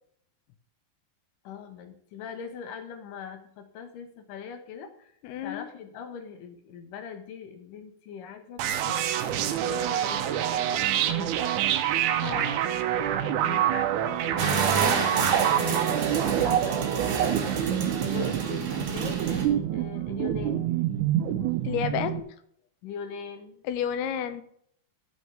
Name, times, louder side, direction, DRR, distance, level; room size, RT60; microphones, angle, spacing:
voice 1, 1.4-5.1 5.4-9.2 9.7-11.5 13.2-17.3 18.1-20.7 22.8-23.6, left 6 dB, 65° left, 6 dB, 2.8 m, -41 dB
voice 2, 5.2-5.7 12.2-12.6 21.6-22.2 23.7-24.4, left 9 dB, 85° left, 11 dB, 2.8 m, -30 dB
sound 1, 8.6-22.2, right 11 dB, 80° right, 1.8 m, -27 dB
sound 2, 14.4-19.5, right 5 dB, 50° right, 2.1 m, -29 dB
12.0 x 9.3 x 3.5 m, 0.67 s
omnidirectional pair, 4.4 m